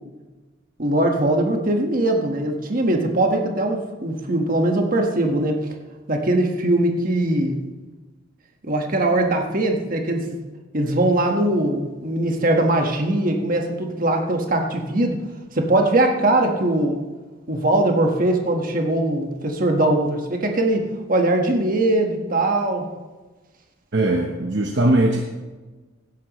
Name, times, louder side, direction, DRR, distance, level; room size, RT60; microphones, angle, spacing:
voice 1, 0.8-5.6 6.1-7.6 8.6-10.3 10.7-15.2 15.5-17.0 17.5-22.9, right 1 dB, 45° right, 2 dB, 1.5 m, -21 dB
voice 2, 23.9-25.2, right 1 dB, 60° right, 2 dB, 0.9 m, -19 dB
16.5 x 11.5 x 3.1 m, 1.2 s
head